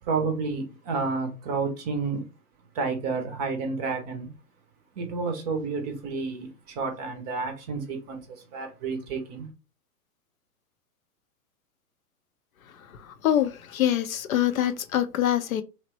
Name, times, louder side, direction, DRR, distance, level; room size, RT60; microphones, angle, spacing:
voice 1, 0.1-2.2 2.8-4.3 5.0-6.5 6.8-8.2 8.5-9.5, right 4 dB, 25° right, 0.6 m, -30 dB
voice 2, 13.2-15.6, left 11 dB, 60° left, 0.5 m, -24 dB
3.0 x 2.1 x 2.9 m
figure-of-eight pair, 110°, 48 cm